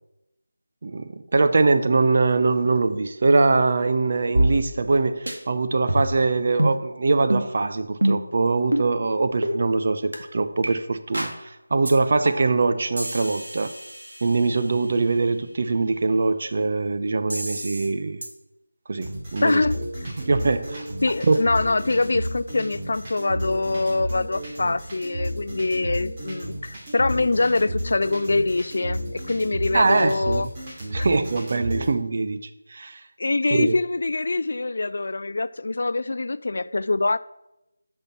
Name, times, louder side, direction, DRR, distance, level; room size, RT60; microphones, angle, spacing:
voice 1, 0.8-13.7 14.2-18.2 18.9-19.6 20.2-20.9 21.2-21.4 29.7-30.5 30.9-32.4 32.7-33.0 33.5-33.8, right 3 dB, 45° right, 0.6 m, -22 dB
sound 1, 4.4-5.0 5.3-5.4 5.9-6.2 6.6-6.8 7.3-7.5 8.0-8.3 8.7-8.9 9.4-9.6 10.1-10.2 10.6-10.7 11.1-11.4 11.9-12.0 12.3-12.6 13.0-14.8 17.3-17.9 18.2-18.3, right 1 dB, 90° right, 1.9 m, -26 dB
sound 2, 19.0-31.9, equal, 25° right, 2.7 m, -32 dB
voice 2, 19.4-20.1 21.0-30.5 31.0-31.1 33.2-37.2, left 3 dB, 60° left, 0.3 m, -24 dB
6.9 x 5.6 x 5.8 m
figure-of-eight pair, 170°, 0 cm